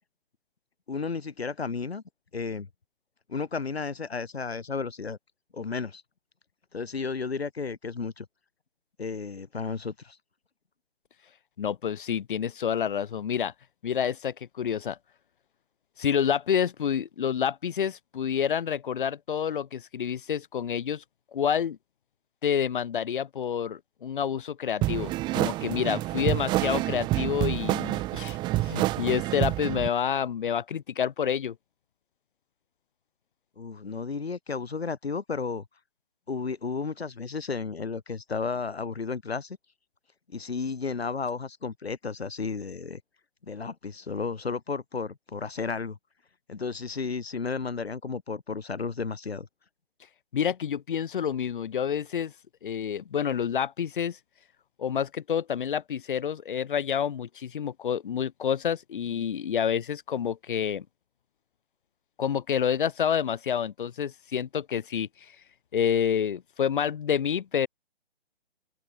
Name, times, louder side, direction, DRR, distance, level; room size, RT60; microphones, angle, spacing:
voice 1, 0.9-2.0 2.3-2.7 3.3-5.2 5.5-6.0 6.7-8.3 9.0-10.2 33.6-35.7 36.3-39.6 40.3-43.0 43.4-46.0 46.5-49.5, left 4 dB, 75° left, 5.4 m, -33 dB
voice 2, 11.6-13.5 13.8-15.0 16.0-21.0 21.3-21.8 22.4-31.6 50.3-52.3 52.6-54.2 54.8-60.8 62.2-65.1 65.7-67.7, left 8 dB, 55° left, 6.0 m, -28 dB
sound 1, 24.8-29.9, right 17 dB, 15° right, 1.0 m, -28 dB
open air
figure-of-eight pair, 140°, 32 cm